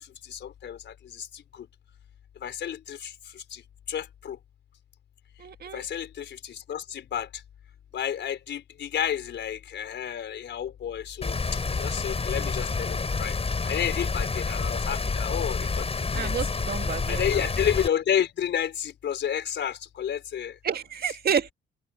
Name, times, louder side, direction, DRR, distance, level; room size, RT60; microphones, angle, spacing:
voice 1, 0.3-1.4 2.4-3.1 3.5-3.6 3.9-4.4 5.7-7.3 7.9-11.4 11.8-13.3 13.6-15.8 16.1-16.3 17.1-20.5, left 9 dB, 65° left, 4.7 m, -30 dB
voice 2, 5.4-5.8 16.1-17.5 20.6-21.5, right 7 dB, 50° right, 1.9 m, -30 dB
Rain, 11.2-17.9, left 4 dB, 30° left, 7.1 m, -28 dB
open air
cardioid pair, 90°, 20 cm